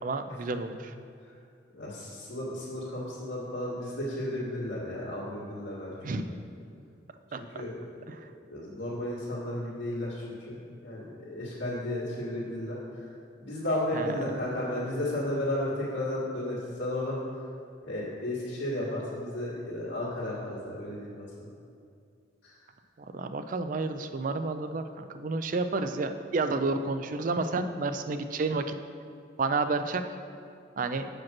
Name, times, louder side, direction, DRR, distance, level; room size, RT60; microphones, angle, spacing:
voice 1, 0.0-0.9 6.0-6.2 7.3-7.4 8.1-8.3 13.9-14.1 23.0-28.7 29.4-30.0 30.8-31.1, right 3 dB, 45° right, 9 dB, 0.4 m, -30 dB
voice 2, 1.7-5.9 7.5-7.8 8.5-12.8 13.4-17.2 17.8-21.5 22.4-22.6, left 1 dB, 90° left, -11 dB, 2.1 m, -33 dB
7.3 x 5.1 x 6.0 m, 2.4 s
head